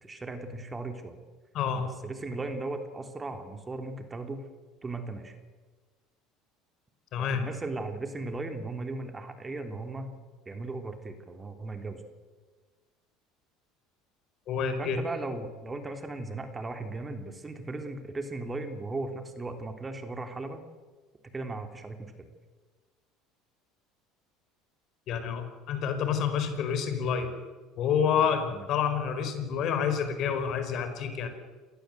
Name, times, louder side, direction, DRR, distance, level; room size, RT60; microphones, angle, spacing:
voice 1, 0.0-1.2 1.7-4.4 4.8-5.4 7.2-10.2 10.5-12.0 14.8-20.6 21.3-22.3 28.5-28.7, right 2 dB, 20° right, 6 dB, 3.3 m, -37 dB
voice 2, 1.5-1.9 7.1-7.4 14.5-15.0 25.1-27.3 27.8-31.3, left 7 dB, 55° left, 8 dB, 5.0 m, -28 dB
27.5 x 19.0 x 8.0 m, 1.3 s
supercardioid pair, 90°, 0 cm